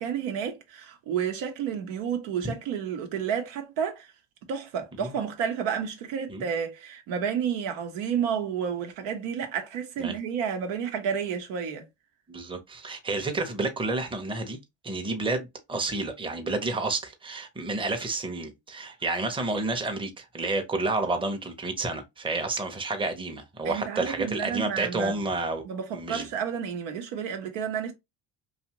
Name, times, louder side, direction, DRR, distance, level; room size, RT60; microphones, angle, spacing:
voice 1, 0.0-4.1 4.5-11.8 23.6-25.2 25.6-27.9, right 7 dB, 75° right, 0.9 m, -31 dB
voice 2, 12.3-14.6 14.8-25.6 25.9-26.3, right 2 dB, 10° right, 0.7 m, -30 dB
2.6 x 2.4 x 2.8 m
hypercardioid pair, 60°, 47 cm